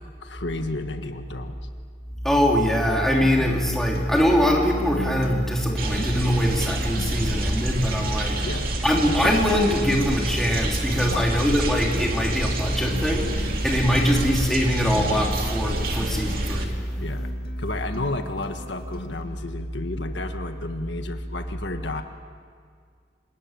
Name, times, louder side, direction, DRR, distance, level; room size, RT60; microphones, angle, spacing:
voice 1, 0.2-1.6 3.4-3.5 8.4-8.8 9.2-9.3 11.1-11.3 17.0-17.3 17.6-22.0, left 2 dB, 80° left, 6 dB, 1.5 m, -32 dB
voice 2, 2.2-8.5 8.8-17.0, equal, ahead, -1 dB, 3.2 m, -22 dB
Acoustic guitar, 3.2-19.2, left 1 dB, 55° left, 2.9 m, -40 dB
sound 1, 5.8-16.7, right 2 dB, 50° right, 2.4 m, -30 dB
27.0 x 20.0 x 9.0 m, 2.1 s
head